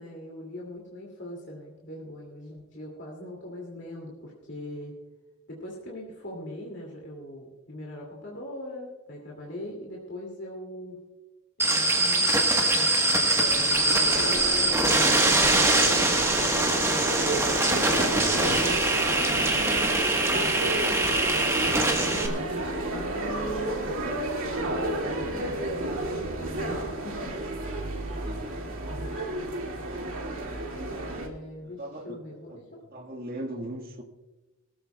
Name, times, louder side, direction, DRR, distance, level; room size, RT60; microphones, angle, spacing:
voice 1, 0.0-4.9 5.5-11.0 11.6-16.5 17.1-20.7 21.6-23.8 24.5-27.3 31.1-32.8, left 1 dB, 55° left, -2 dB, 2.4 m, -41 dB
sound 1, 11.6-22.3, right 2 dB, 10° right, 1.2 m, -23 dB
sound 2, 13.5-31.3, right 1 dB, 70° right, 2.2 m, -31 dB
voice 2, 28.1-28.6 31.6-32.2 32.5-32.6 32.9-34.0, right 1 dB, 40° right, 3 dB, 1.6 m, -38 dB
21.0 x 14.0 x 2.3 m, 1.1 s
head